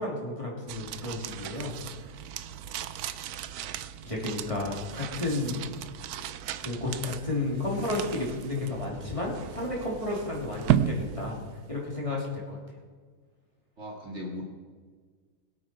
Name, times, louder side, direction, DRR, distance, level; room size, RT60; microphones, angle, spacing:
voice 1, 0.0-2.0 4.0-5.6 6.6-11.4 11.7-12.6, left 2 dB, 15° left, -4 dB, 3.1 m, -32 dB
sound 1, 0.7-12.0, right 10 dB, 70° right, 1.0 m, -35 dB
voice 2, 13.8-14.4, left 1 dB, 40° right, -2 dB, 2.4 m, -39 dB
22.0 x 8.6 x 4.6 m, 1.5 s
omnidirectional pair, 1.9 m